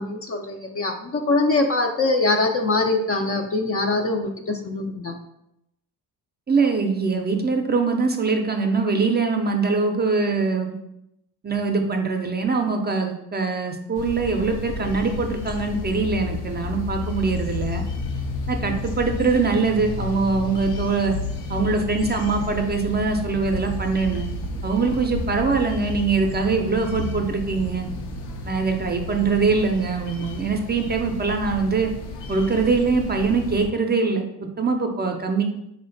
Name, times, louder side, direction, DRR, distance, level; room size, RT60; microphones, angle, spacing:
voice 1, 0.0-5.2, left 3 dB, 35° left, 4 dB, 0.4 m, -23 dB
voice 2, 6.5-10.7 11.4-17.8 18.5-21.1 21.5-24.3 24.6-27.9 28.4-31.9 32.3-35.4, right 4 dB, 25° right, 3 dB, 0.5 m, -23 dB
sound 1, 13.9-33.7, left 2 dB, 75° left, 0.7 m, -32 dB
3.9 x 2.2 x 3.8 m, 0.83 s
supercardioid pair, 65°, 43 cm